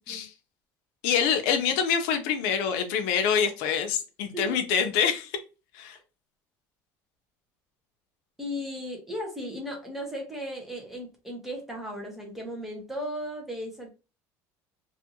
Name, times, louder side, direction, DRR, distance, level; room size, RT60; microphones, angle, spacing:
voice 1, 1.0-5.3 5.7-6.0, left 7 dB, 80° left, 6 dB, 0.6 m, -26 dB
voice 2, 8.4-13.9, equal, 5° right, 0 dB, 0.8 m, -36 dB
2.6 x 2.4 x 2.8 m, 0.30 s
cardioid pair, 170°, 7 cm